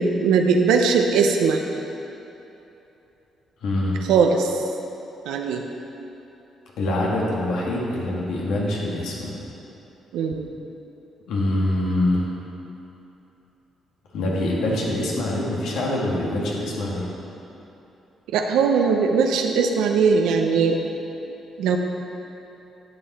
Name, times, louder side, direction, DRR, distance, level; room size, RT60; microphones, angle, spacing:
voice 1, 0.0-1.6 4.1-4.6 5.3-5.7 10.1-10.5 18.3-20.8 21.6-21.8, right 5 dB, 90° right, 3 dB, 0.6 m, -20 dB
voice 2, 3.6-4.0 6.8-9.4 11.3-12.3 14.1-17.1, left 1 dB, 85° left, -3 dB, 1.8 m, -24 dB
10.5 x 6.9 x 4.2 m, 3.0 s
cardioid pair, 90°, 0 cm